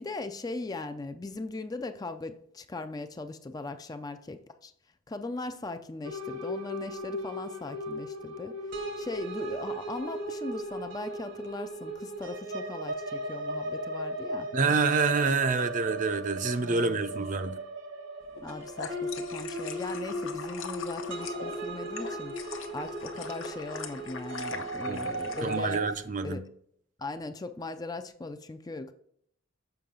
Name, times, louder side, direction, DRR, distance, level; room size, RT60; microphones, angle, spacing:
voice 1, 0.0-4.7 5.1-14.5 16.6-17.3 18.4-25.8 26.2-26.4 27.0-28.9, left 2 dB, 20° left, 0.3 m, -39 dB
sound 1, 6.0-25.9, right 1 dB, 65° right, 1.1 m, -37 dB
voice 2, 14.5-17.6 24.9-25.1 25.4-26.4, right 4 dB, 40° right, 0.5 m, -27 dB
sound 2, 18.3-25.8, left 5 dB, 75° left, 0.8 m, -42 dB
7.0 x 5.7 x 3.7 m
head